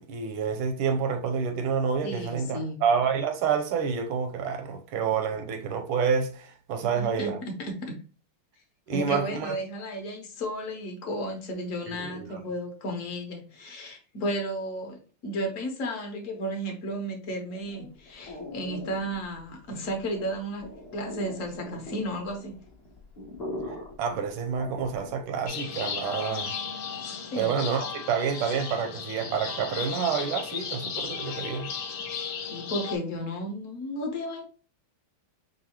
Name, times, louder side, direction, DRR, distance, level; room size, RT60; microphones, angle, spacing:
voice 1, 0.0-7.4 8.9-9.6 11.9-12.4 24.0-26.5 27.4-31.7, right 6 dB, 80° right, 1.6 m, -28 dB
voice 2, 2.0-2.8 6.8-8.0 8.9-20.6 20.9-22.5 27.3-27.5 32.5-34.4, equal, 50° left, 1.0 m, -33 dB
sound 1, 17.5-25.3, left 1 dB, 35° left, 0.6 m, -42 dB
sound 2, 25.5-33.0, left 6 dB, 70° left, 1.4 m, -35 dB
5.3 x 2.7 x 2.9 m
omnidirectional pair, 2.3 m